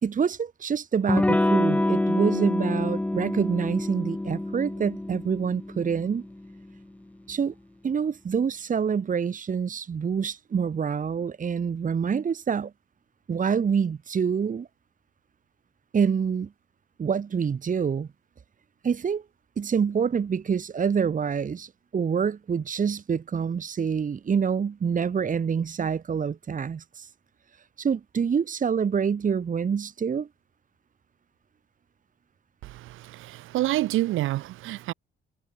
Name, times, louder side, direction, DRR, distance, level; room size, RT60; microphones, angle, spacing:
voice 1, 0.0-6.2 7.3-7.5 7.8-12.7 13.3-14.7 15.9-16.5 17.0-18.1 18.8-19.2 19.6-27.1 27.8-30.3, right 6 dB, 40° right, 2.0 m, -26 dB
Electric guitar / Strum, 1.1-6.5, left 1 dB, 5° left, 0.6 m, -26 dB
voice 2, 32.6-34.9, right 16 dB, 90° right, 5.2 m, -28 dB
cardioid pair, 90°, 20 cm